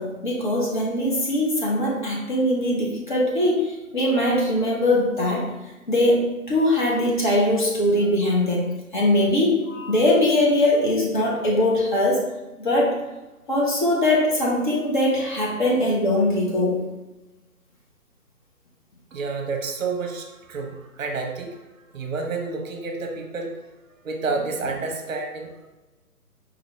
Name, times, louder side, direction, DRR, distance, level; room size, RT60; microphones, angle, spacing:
voice 1, 0.0-5.5 5.9-12.2 12.6-13.0 13.5-16.8, left 1 dB, 35° left, -3 dB, 0.8 m, -21 dB
voice 2, 19.1-21.6 21.9-23.5 24.0-25.5, right 4 dB, 60° right, 2 dB, 0.7 m, -29 dB
4.8 x 2.2 x 3.0 m, 1.1 s
figure-of-eight pair, 145°, 44 cm